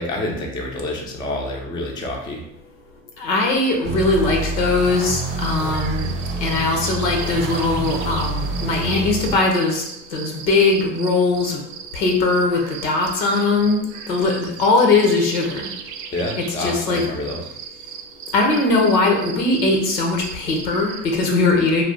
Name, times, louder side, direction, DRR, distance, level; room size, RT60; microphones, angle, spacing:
voice 1, 0.0-2.4 16.1-17.4, left 1 dB, 10° left, 0 dB, 0.4 m, -28 dB
voice 2, 3.2-6.1 6.4-9.8 10.1-11.6 11.9-13.8 14.1-15.7 16.4-17.0 18.3-21.8, left 3 dB, 90° left, 1 dB, 0.9 m, -20 dB
sound 1, 3.8-9.4, right 2 dB, 20° right, 0.8 m, -27 dB
sound 2, 5.0-21.2, right 7 dB, 55° right, 0.5 m, -37 dB
2.7 x 2.4 x 3.5 m, 0.82 s
hypercardioid pair, 85°, 49 cm